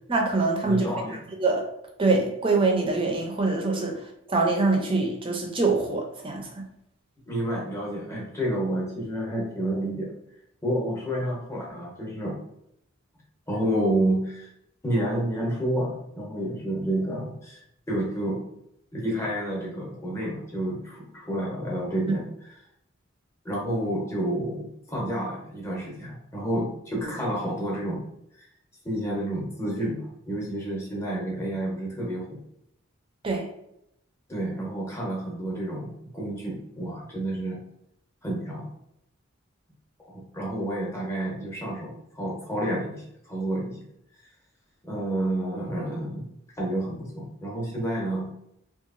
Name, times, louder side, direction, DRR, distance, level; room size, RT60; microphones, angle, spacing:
voice 1, 0.1-0.9 1.4-1.6 2.0-4.0 4.3-6.7 33.2-33.5, right 3 dB, 25° right, 1 dB, 0.4 m, -24 dB
voice 2, 0.6-1.2 7.3-10.1 10.6-12.4 13.5-14.5 14.8-17.6 17.9-18.4 18.9-22.2 23.4-28.1 28.4-28.5 28.8-32.4 34.3-37.6 38.2-38.7 40.1-43.8 44.8-46.2 46.6-48.3, right 1 dB, 15° left, -4 dB, 0.7 m, -29 dB
2.8 x 2.3 x 2.5 m, 0.77 s
head